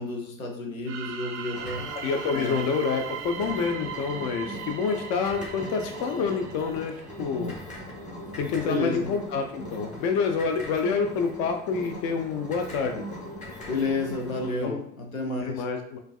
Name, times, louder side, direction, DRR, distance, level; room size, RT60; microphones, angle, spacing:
voice 1, 0.0-1.9 2.3-2.6 8.6-9.1 13.7-15.6, left 2 dB, 85° left, 1 dB, 0.8 m, -31 dB
sound 1, 0.8-7.5, right 8 dB, 35° right, 0.4 m, -39 dB
sound 2, 1.5-14.6, left 1 dB, 15° left, 1.5 m, -40 dB
voice 2, 2.0-7.5 8.4-13.0 14.6-14.8 15.4-16.0, left 5 dB, 50° left, 5 dB, 0.5 m, -28 dB
4.4 x 2.4 x 2.3 m, 0.67 s
figure-of-eight pair, 65°, 40 cm